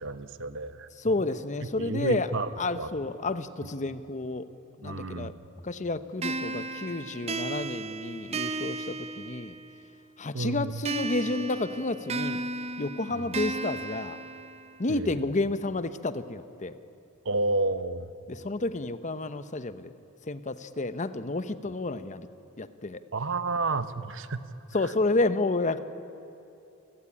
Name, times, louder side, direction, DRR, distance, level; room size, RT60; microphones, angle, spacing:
voice 1, 0.0-0.9 1.8-2.9 4.8-5.5 10.3-10.8 13.1-13.3 14.9-15.2 17.2-18.1 23.1-24.4, right 3 dB, 60° right, 12 dB, 1.0 m, -31 dB
voice 2, 1.0-2.3 2.6-4.5 4.8-5.3 5.6-9.6 10.2-12.4 12.8-14.2 14.8-16.8 18.3-19.9 20.3-22.3 22.6-23.0 24.7-25.8, left 2 dB, 35° left, 12 dB, 0.9 m, -30 dB
sound 1, 6.2-9.8 10.9-14.9, right 3 dB, 30° right, 0.7 m, -34 dB
28.5 x 16.0 x 10.0 m, 2.8 s
head